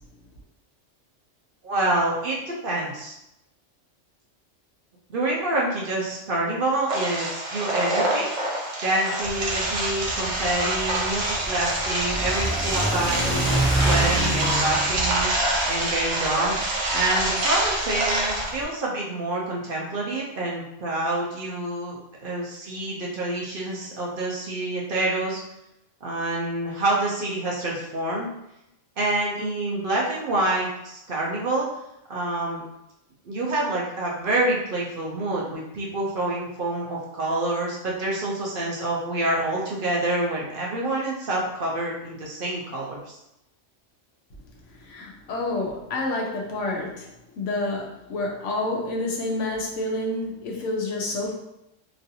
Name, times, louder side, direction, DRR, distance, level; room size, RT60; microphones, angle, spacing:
voice 1, 1.6-3.1 5.1-8.3 8.8-25.4 26.0-28.3 29.0-31.7 32.1-32.6 33.2-43.2, right 2 dB, 55° right, -4 dB, 0.7 m, -27 dB
sound 1, 6.9-18.5, right 1 dB, 90° right, 1.1 m, -26 dB
Car / Accelerating revving vroom, 9.2-18.6, right 1 dB, ahead, 0.4 m, -29 dB
voice 2, 44.7-51.3, left 2 dB, 75° left, -1 dB, 1.0 m, -29 dB
3.0 x 2.5 x 2.7 m, 0.86 s
omnidirectional pair, 1.3 m